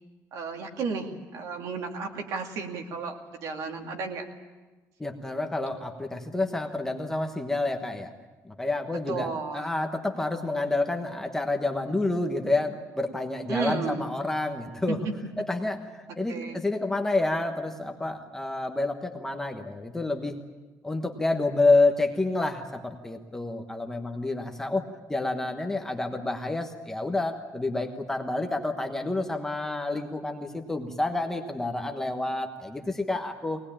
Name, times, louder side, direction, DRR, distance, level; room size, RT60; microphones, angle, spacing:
voice 1, 0.3-4.3 9.1-9.7 13.5-14.1 14.9-15.1 16.3-16.6, right 4 dB, 60° right, 3 dB, 2.4 m, -33 dB
voice 2, 5.0-8.1 8.4-15.0 15.4-20.4 20.8-24.8 25.1-33.6, left 2 dB, 5° left, 3 dB, 1.2 m, -28 dB
23.0 x 19.0 x 8.7 m, 1.2 s
cardioid pair, 175°, 6 cm